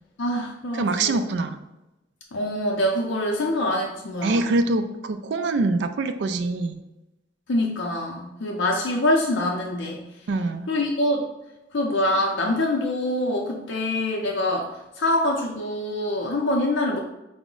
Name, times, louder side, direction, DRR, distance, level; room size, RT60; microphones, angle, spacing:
voice 1, 0.2-1.2 2.3-4.5 7.5-10.0 10.7-11.3 11.7-14.7 15.0-17.0, left 1 dB, 75° left, -1 dB, 0.5 m, -25 dB
voice 2, 0.7-1.6 4.2-6.8 10.3-10.7, right 2 dB, 60° right, 8 dB, 0.3 m, -24 dB
4.7 x 2.1 x 3.7 m, 0.96 s
head